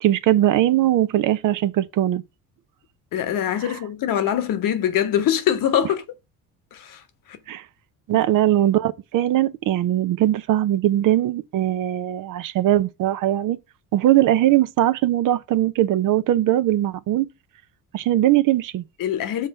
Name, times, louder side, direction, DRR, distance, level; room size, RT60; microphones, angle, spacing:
voice 1, 0.0-2.2 3.6-3.8 7.5-7.6 8.1-13.6 13.9-17.3 17.9-18.8, right 13 dB, 45° right, 0.7 m, -20 dB
voice 2, 3.1-6.0 6.7-7.0 7.3-7.4 19.0-19.5, left 10 dB, 50° left, 1.2 m, -23 dB
5.9 x 4.3 x 5.9 m
hypercardioid pair, 60°, 44 cm